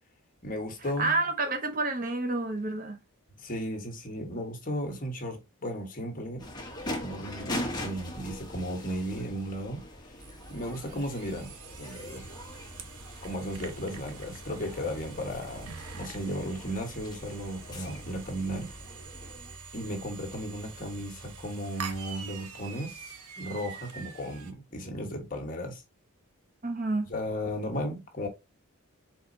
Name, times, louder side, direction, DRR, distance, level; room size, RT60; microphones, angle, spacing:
voice 1, 0.4-1.1 3.4-6.5 6.8-9.8 10.5-12.3 13.2-18.7 19.7-23.1 23.4-25.8 27.1-28.3, equal, 40° left, 1.3 m, -35 dB
voice 2, 1.0-3.0 26.6-27.1, right 2 dB, 40° right, 0.8 m, -29 dB
sound 1, 6.4-19.5, left 1 dB, 20° left, 1.1 m, -41 dB
sound 2, 10.2-24.5, right 5 dB, 90° right, 0.9 m, -45 dB
4.3 x 4.1 x 2.7 m
head